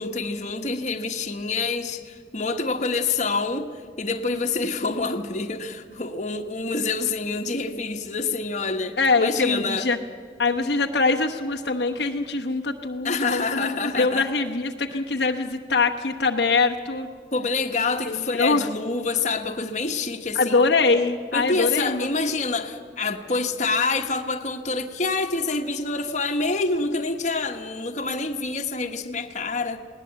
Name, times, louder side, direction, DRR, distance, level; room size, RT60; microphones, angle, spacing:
voice 1, 0.0-9.9 13.0-14.4 14.9-15.0 17.3-20.6 21.3-29.8, left 3 dB, 40° left, 5 dB, 1.3 m, -27 dB
voice 2, 9.0-10.0 10.4-17.1 18.1-18.7 20.3-22.1, left 3 dB, 65° left, 3 dB, 1.0 m, -23 dB
20.0 x 18.5 x 8.2 m, 2.1 s
head